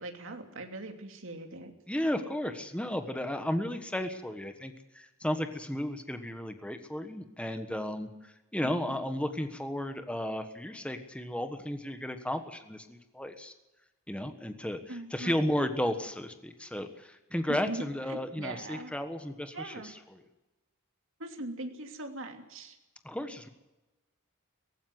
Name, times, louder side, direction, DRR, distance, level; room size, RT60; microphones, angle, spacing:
voice 1, 0.0-1.7 8.6-8.7 14.9-15.3 17.5-18.9 19.5-20.0 21.2-22.8, right 2 dB, 65° right, 4 dB, 2.9 m, -40 dB
voice 2, 1.9-13.5 14.1-20.2 23.0-23.5, left 1 dB, 5° left, 7 dB, 1.3 m, -34 dB
17.5 x 15.5 x 9.4 m, 1.0 s
head